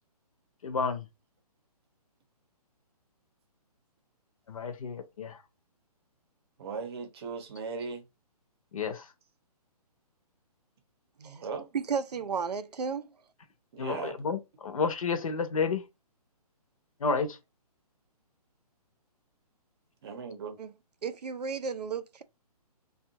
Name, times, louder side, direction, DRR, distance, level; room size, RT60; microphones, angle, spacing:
voice 1, 0.6-1.1 4.5-5.4 8.7-9.1 13.8-15.9 17.0-17.4, left 5 dB, 60° left, 0.6 m, -31 dB
voice 2, 6.6-8.0 11.2-11.7 13.7-14.1 20.0-20.6, right 5 dB, 40° right, 0.7 m, -38 dB
voice 3, 11.7-13.1 20.6-20.7 21.0-22.2, right 6 dB, 80° right, 0.4 m, -33 dB
2.7 x 2.3 x 2.7 m
figure-of-eight pair, 135°, 20 cm